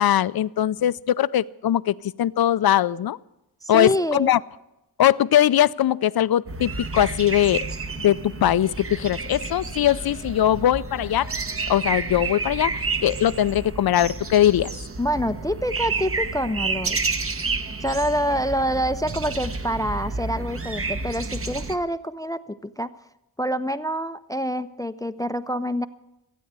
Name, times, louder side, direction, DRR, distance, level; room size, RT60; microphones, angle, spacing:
voice 1, 0.0-3.2 3.7-4.4 5.0-7.6 8.0-11.3 11.7-14.7, left 11 dB, 70° left, 18 dB, 0.5 m, -21 dB
voice 2, 3.6-4.3 15.0-17.2 17.8-22.9 23.4-25.9, equal, 10° left, 13 dB, 0.4 m, -26 dB
sound 1, 6.5-21.8, right 3 dB, 35° right, 0.9 m, -30 dB
16.0 x 9.1 x 8.1 m, 0.93 s
wide cardioid pair, 70°, 39 cm